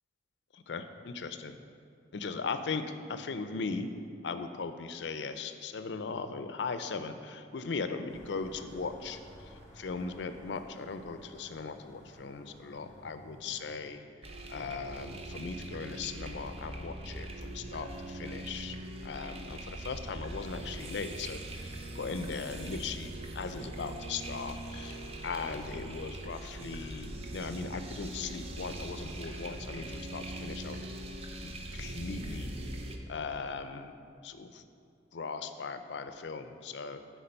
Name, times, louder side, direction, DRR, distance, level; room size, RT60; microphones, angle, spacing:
voice 1, 0.5-1.6 2.1-2.8 3.1-3.9 4.2-9.2 9.8-14.0 14.5-18.8 19.0-25.0 25.2-30.8 31.4-32.5 33.1-33.9 34.2-34.6 35.1-37.0, left 4 dB, 70° left, 9 dB, 0.5 m, -38 dB
sound 1, 8.1-13.7, equal, 15° left, 1.3 m, -54 dB
sound 2, 14.2-33.0, right 1 dB, 35° right, 0.6 m, -41 dB
8.7 x 4.5 x 5.3 m, 2.5 s
head